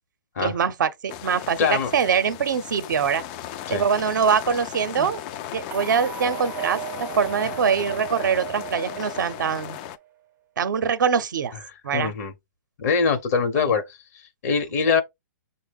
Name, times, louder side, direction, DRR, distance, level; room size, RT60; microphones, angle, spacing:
voice 1, 0.4-3.2 3.7-5.2 5.5-9.8 10.6-11.5 11.8-12.2 13.5-13.6 14.9-15.0, right 6 dB, 70° right, 0.6 m, -23 dB
sound 1, 1.1-10.0, left 11 dB, 30° left, 0.4 m, -36 dB
voice 2, 1.6-1.9 3.7-3.8 11.9-12.3 12.8-13.8 14.4-15.0, left 5 dB, 50° left, 0.9 m, -22 dB
sound 2, 5.7-9.9, right 13 dB, 20° right, 0.5 m, -36 dB
6.2 x 2.1 x 3.5 m
hypercardioid pair, 135°, 11 cm